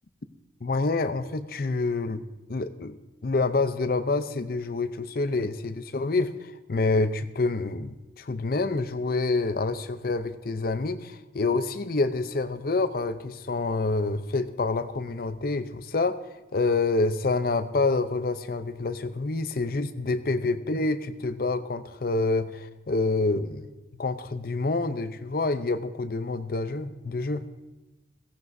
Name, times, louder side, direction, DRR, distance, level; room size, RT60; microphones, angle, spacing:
voice 1, 0.6-2.2 2.5-16.2 16.5-23.7 24.0-27.5, left 3 dB, 55° left, 12 dB, 0.6 m, -27 dB
16.5 x 15.5 x 2.7 m, 1.1 s
head